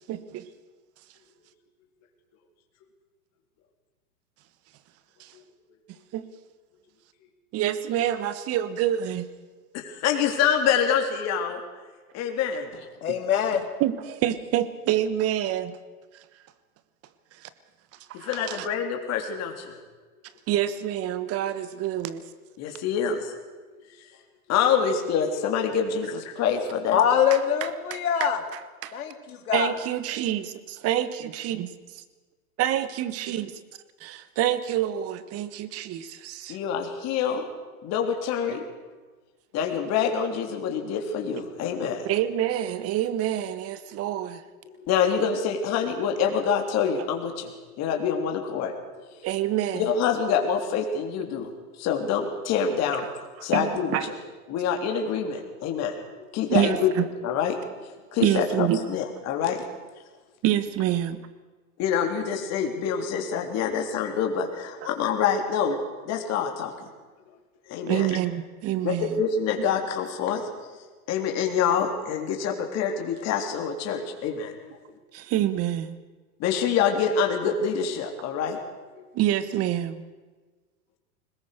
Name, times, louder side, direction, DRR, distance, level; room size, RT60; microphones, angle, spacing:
voice 1, 0.1-0.5 5.2-5.3 6.1-6.2 7.5-9.3 13.8-15.8 17.4-17.5 18.1-18.7 20.5-22.2 27.3-29.1 29.5-30.5 30.8-31.7 32.6-33.5 34.0-36.6 42.0-44.4 49.2-49.9 53.4-54.1 56.5-57.0 58.2-58.8 60.4-61.2 67.8-69.2 75.1-75.9 79.1-80.0, right 12 dB, 30° right, 14 dB, 1.4 m, -27 dB
voice 2, 9.7-11.6 12.1-12.7 18.1-19.8 22.6-23.3 24.5-27.0 36.5-37.4 37.8-38.6 39.5-42.0 44.9-48.7 49.8-51.5 51.8-53.1 53.4-54.1 54.5-56.0 56.3-56.9 57.2-57.6 58.1-59.6 61.8-65.8 66.1-66.7 67.7-68.1 68.8-70.5 71.1-74.6 76.4-78.6 78.9-79.0, left 7 dB, 35° left, 3 dB, 3.6 m, -26 dB
voice 3, 13.0-13.6 26.9-28.4 28.9-29.7, left 8 dB, 75° left, 5 dB, 2.7 m, -23 dB
21.5 x 20.5 x 6.7 m, 1.4 s
hypercardioid pair, 120°, 44 cm